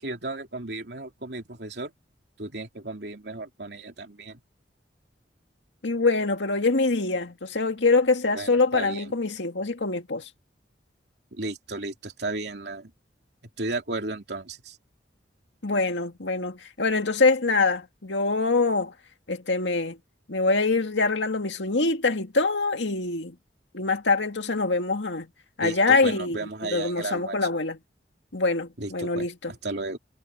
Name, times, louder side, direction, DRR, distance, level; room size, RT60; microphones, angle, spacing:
voice 1, 0.0-1.9 2.4-4.4 8.3-9.1 11.3-12.9 13.6-14.8 25.6-27.4 28.8-30.0, right 2 dB, 65° right, 3.2 m, -34 dB
voice 2, 5.8-10.3 15.6-18.9 19.3-20.0 20.3-23.4 23.7-25.3 25.6-26.4 26.7-27.8 28.3-29.5, left 3 dB, 85° left, 2.1 m, -24 dB
head